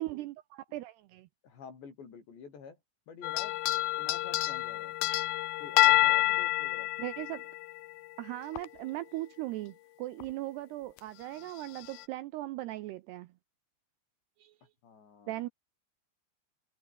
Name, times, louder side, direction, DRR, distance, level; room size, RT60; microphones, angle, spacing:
voice 1, 0.0-1.3 7.0-7.4 8.2-13.3 14.4-14.5 15.3-15.5, right 17 dB, 90° right, 2.4 m, -38 dB
voice 2, 1.4-2.8 3.1-3.6 4.0-4.9 5.6-6.9 14.8-15.4, left 6 dB, 65° left, 7.8 m, -48 dB
sound 1, 3.2-8.1 8.6-8.7 10.2-10.3 11.0-11.1 11.8-12.0, left 17 dB, 85° left, 2.1 m, -28 dB
omnidirectional pair, 5.6 m